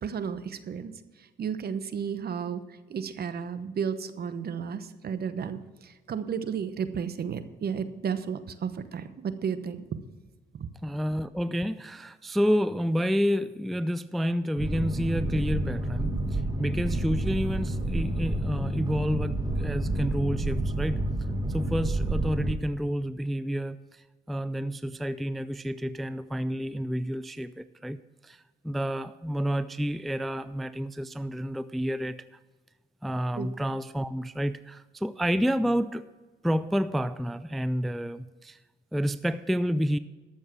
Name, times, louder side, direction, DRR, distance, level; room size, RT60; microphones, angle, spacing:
voice 1, 0.0-10.0 10.5-10.7 33.4-33.5, right 7 dB, 50° right, 12 dB, 1.0 m, -33 dB
voice 2, 10.8-21.0 21.5-32.2 33.0-36.0 36.4-38.6 38.9-40.0, equal, ahead, 14 dB, 0.3 m, -29 dB
Boat Water vehicle, 14.6-22.6, right 1 dB, 20° right, 1.8 m, -29 dB
sound 1, 17.2-20.2, left 3 dB, 55° left, 3.7 m, -49 dB
13.0 x 7.2 x 6.0 m, 1.3 s
cardioid pair, 90°, 20 cm